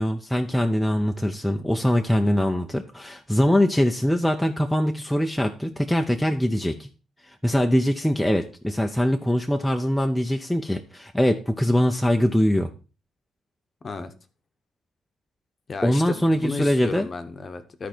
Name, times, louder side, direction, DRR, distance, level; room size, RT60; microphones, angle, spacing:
voice 1, 0.0-6.9 7.3-12.7 15.8-17.1, equal, 5° left, 0.5 m, -22 dB
voice 2, 15.7-17.9, left 4 dB, 30° left, 0.9 m, -33 dB
12.5 x 4.6 x 4.4 m
cardioid pair, 150°, 0 cm